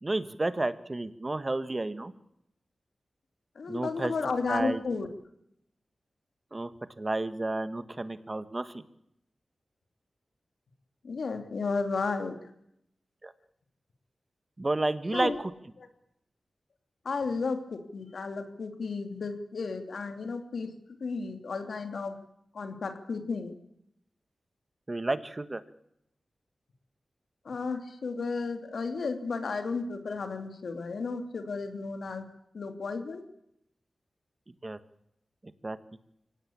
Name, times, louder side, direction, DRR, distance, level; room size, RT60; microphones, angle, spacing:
voice 1, 0.0-2.1 3.7-4.1 4.5-4.8 6.5-6.7 7.0-8.8 13.2-13.3 14.6-15.5 24.9-25.6 34.6-34.8 35.6-35.8, right 2 dB, 30° right, 11 dB, 1.8 m, -31 dB
voice 2, 3.6-5.1 11.0-12.4 15.1-15.4 17.0-20.7 21.0-22.2 22.5-23.5 27.4-32.3 32.5-33.2, left 4 dB, 80° left, 7 dB, 2.8 m, -33 dB
24.0 x 18.0 x 8.6 m, 0.77 s
cardioid pair, 65°, 0 cm